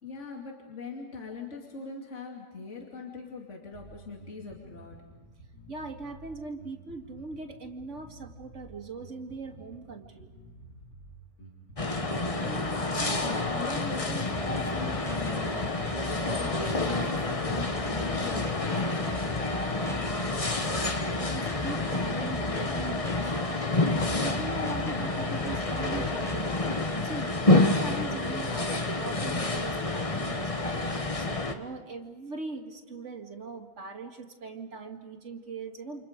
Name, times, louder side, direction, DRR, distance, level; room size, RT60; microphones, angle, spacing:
voice 1, 0.0-5.0 12.4-19.0, left 4 dB, 45° left, -1 dB, 2.8 m, -41 dB
Bass guitar, 3.7-13.3, right 1 dB, 85° left, 6.5 m, -51 dB
voice 2, 5.7-10.3 19.7-36.0, right 3 dB, 45° right, 3 dB, 2.3 m, -41 dB
sound 1, 11.8-31.5, left 2 dB, 25° left, 1.2 m, -29 dB
sound 2, 14.3-27.0, left 1 dB, 5° left, 0.6 m, -42 dB
29.5 x 27.5 x 5.2 m, 1.3 s
omnidirectional pair, 1.8 m